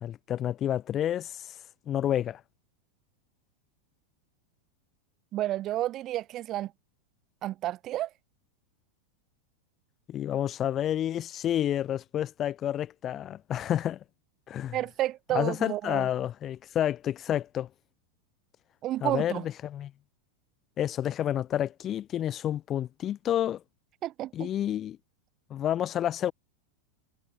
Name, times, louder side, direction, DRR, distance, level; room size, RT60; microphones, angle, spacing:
voice 1, 0.0-1.5 1.9-2.4 10.1-14.0 14.5-14.8 15.3-17.7 19.0-19.9 20.8-23.6 24.3-25.0 25.5-26.3, left 11 dB, 30° left, 0.5 m, -29 dB
voice 2, 5.3-6.7 7.4-8.1 14.7-16.1 18.8-19.4 24.0-24.5, right 14 dB, 35° right, 0.8 m, -31 dB
figure-of-eight pair, 90°, 0 cm